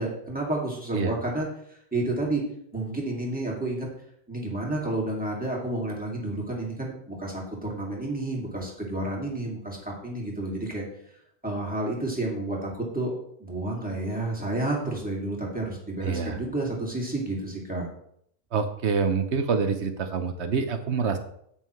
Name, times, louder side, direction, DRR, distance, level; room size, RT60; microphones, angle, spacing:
voice 1, 0.0-2.4 2.7-3.9 4.3-10.8 11.4-13.1 13.4-17.9, right 2 dB, 5° right, -4 dB, 2.2 m, -30 dB
voice 2, 16.0-16.4 18.5-21.2, right 5 dB, 55° right, 8 dB, 1.0 m, -26 dB
9.2 x 8.6 x 3.1 m, 0.70 s
omnidirectional pair, 1.6 m